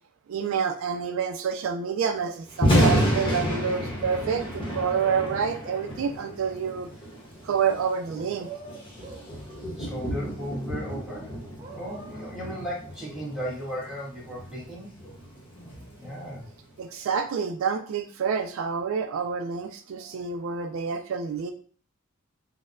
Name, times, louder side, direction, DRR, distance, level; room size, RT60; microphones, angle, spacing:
voice 1, 0.3-4.4 4.7-6.9 7.4-8.5 16.8-21.5, right 6 dB, 75° right, 7 dB, 0.3 m, -28 dB
Thunder, 2.5-16.6, equal, 25° left, 0.9 m, -30 dB
sound 1, 4.6-5.9 8.1-9.3 11.6-12.4, right 5 dB, 25° right, 0.6 m, -43 dB
voice 2, 9.8-11.4 11.7-14.9 16.0-16.4, equal, ahead, -8 dB, 1.4 m, -35 dB
4.1 x 2.1 x 2.5 m, 0.43 s
head